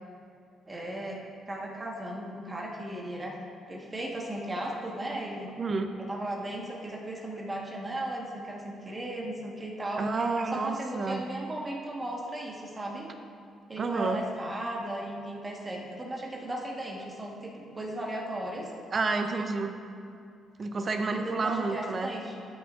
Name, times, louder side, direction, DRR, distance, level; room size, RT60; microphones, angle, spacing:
voice 1, 0.7-3.4 3.7-5.5 6.0-10.1 10.5-13.1 13.7-18.7 21.2-22.4, right 1 dB, 25° right, -2 dB, 1.3 m, -36 dB
voice 2, 5.6-5.9 10.0-11.3 13.8-14.2 18.9-19.8 20.6-22.1, right 3 dB, 40° right, 6 dB, 0.5 m, -29 dB
12.5 x 5.9 x 2.5 m, 2.4 s
cardioid pair, 90°, 0 cm